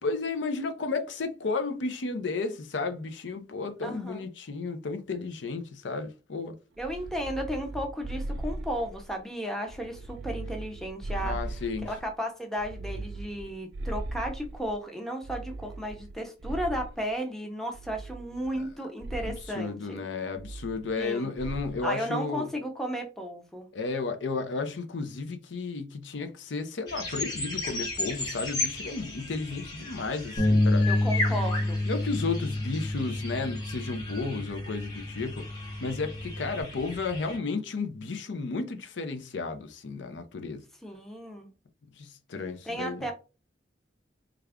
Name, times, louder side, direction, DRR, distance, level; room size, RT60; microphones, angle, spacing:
voice 1, 0.0-6.5 11.2-11.9 19.2-22.5 23.7-30.9 31.3-31.4 31.9-40.6 42.0-43.1, left 4 dB, 80° left, 0.5 m, -33 dB
voice 2, 3.8-4.2 6.8-11.4 11.8-20.0 20.9-21.3 21.8-23.7 30.9-31.8 40.8-41.5 42.7-43.1, equal, ahead, 0.6 m, -34 dB
sound 1, 6.8-9.2 9.7-12.1 12.6-14.8 15.2-17.1 17.7-18.7 19.0-19.5 20.4-21.1 21.4-21.8, right 2 dB, 65° right, 0.5 m, -38 dB
sound 2, 26.9-37.4, left 2 dB, 20° left, 1.0 m, -36 dB
Bass guitar, 30.4-36.6, left 1 dB, 45° left, 0.9 m, -29 dB
3.3 x 2.4 x 3.4 m
head